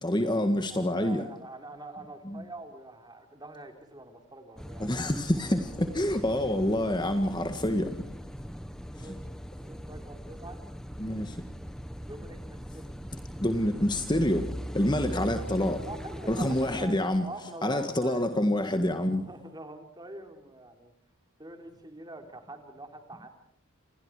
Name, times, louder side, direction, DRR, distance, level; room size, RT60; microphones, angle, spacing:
voice 1, 0.0-1.2 2.2-2.4 4.8-7.9 9.1-9.2 11.0-11.3 13.4-14.5 14.7-15.8 16.3-17.3 17.6-19.2, left 1 dB, 20° left, 1.6 m, -27 dB
voice 2, 0.7-5.0 5.5-5.7 7.0-7.3 8.2-8.4 8.9-9.2 9.7-10.6 11.9-12.9 15.9-18.3 19.1-20.9 21.4-23.3, right 2 dB, 20° right, 3.7 m, -45 dB
Car passing by / Idling / Accelerating revving vroom, 4.6-16.8, equal, 5° left, 1.2 m, -41 dB
28.5 x 28.0 x 4.9 m
head